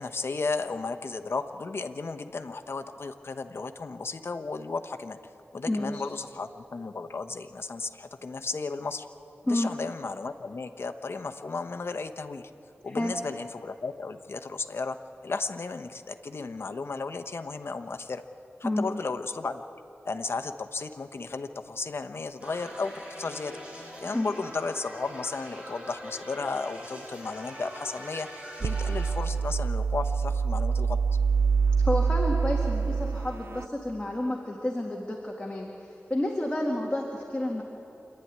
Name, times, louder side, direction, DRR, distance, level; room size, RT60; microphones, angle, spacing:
voice 1, 0.0-5.2 5.5-9.1 9.4-12.5 12.8-15.0 15.2-18.2 18.6-19.6 20.0-23.6 24.0-28.3 28.6-31.0, left 4 dB, 60° left, 8 dB, 1.0 m, -34 dB
voice 2, 5.7-6.0 9.5-9.7 13.0-13.1 18.6-18.8 24.1-24.3 31.8-35.7 36.1-37.6, left 1 dB, 20° left, -1 dB, 2.2 m, -30 dB
sound 1, 22.4-29.1, equal, 25° right, 6.6 m, -43 dB
sound 2, 28.6-33.7, right 5 dB, 55° right, 0.5 m, -26 dB
27.0 x 11.5 x 9.6 m, 2.9 s
wide cardioid pair, 80°, 5 cm